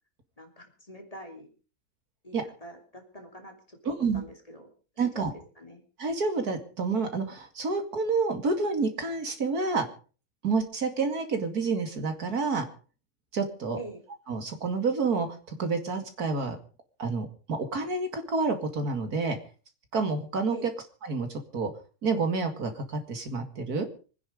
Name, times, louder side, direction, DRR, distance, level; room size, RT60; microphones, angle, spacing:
voice 1, 0.4-1.5 2.2-4.7 5.0-5.3 5.6-5.8 13.8-14.0 20.5-20.7, equal, 20° left, 3 dB, 3.3 m, -45 dB
voice 2, 3.9-4.2 5.0-5.3 6.0-9.9 10.4-12.6 13.3-13.8 14.3-16.6 17.0-19.4 19.9-20.6 21.0-21.7 22.0-23.9, right 4 dB, 75° right, 6 dB, 2.9 m, -29 dB
25.0 x 10.0 x 5.2 m, 0.38 s
omnidirectional pair, 1.6 m